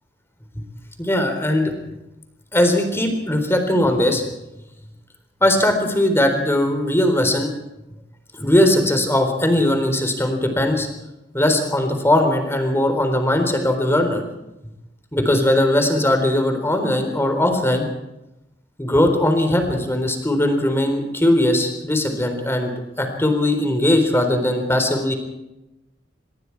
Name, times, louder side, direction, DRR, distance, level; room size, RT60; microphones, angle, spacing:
voice 1, 1.0-1.7 2.5-4.2 5.4-7.5 8.4-10.9 11.3-14.2 15.1-17.9 18.8-22.7 23.0-25.1, left 1 dB, 15° left, 5 dB, 4.0 m, -19 dB
25.5 x 21.5 x 4.8 m, 0.94 s
head